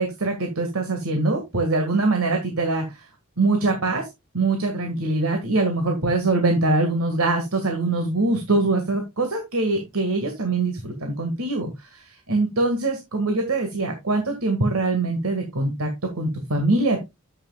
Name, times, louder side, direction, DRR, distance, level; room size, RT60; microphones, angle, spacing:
voice 1, 0.0-3.1 3.4-4.1 4.3-15.9 16.2-17.0, right 2 dB, 90° right, 4 dB, 1.9 m, -23 dB
9.6 x 8.1 x 2.3 m, 0.21 s
head